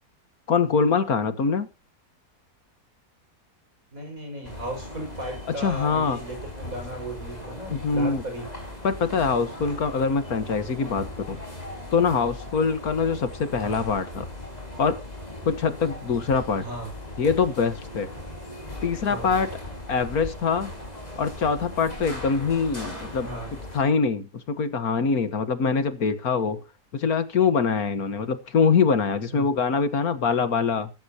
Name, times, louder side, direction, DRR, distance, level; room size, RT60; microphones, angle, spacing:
voice 1, 0.5-1.7 5.6-6.2 7.7-8.2 8.8-11.4 11.9-14.3 14.8-15.0 15.5-16.6 17.2-18.1 18.8-19.5 19.9-20.7 21.2-23.3 23.7-26.6 26.9-30.9, left 5 dB, 65° left, 12 dB, 1.8 m, -24 dB
voice 2, 3.9-8.5 13.5-13.8 16.6-16.9 19.0-19.3 23.2-23.5 29.3-29.4, right 1 dB, 55° right, 3 dB, 6.8 m, -36 dB
sound 1, 4.4-23.8, left 1 dB, 25° left, 5.1 m, -38 dB
15.5 x 15.0 x 2.9 m, 0.29 s
omnidirectional pair, 1.7 m